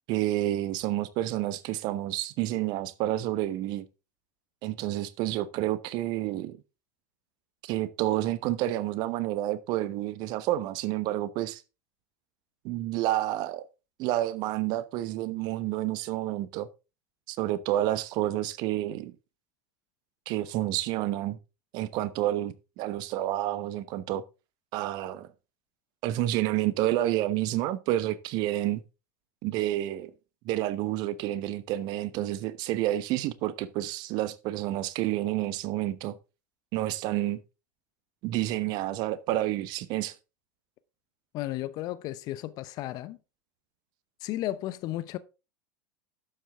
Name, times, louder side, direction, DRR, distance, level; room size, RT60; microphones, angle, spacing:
voice 1, 0.1-3.8 4.6-6.6 7.6-11.6 12.6-13.7 14.0-16.7 17.3-19.1 20.3-21.4 21.7-24.2 24.7-25.3 26.0-28.8 29.4-30.1 30.4-36.2 36.7-37.4 38.2-40.1, right 14 dB, 45° right, 1.1 m, -29 dB
voice 2, 41.3-43.2 44.2-45.2, left 15 dB, 45° left, 0.8 m, -34 dB
11.5 x 7.6 x 3.6 m
figure-of-eight pair, 85°, 9 cm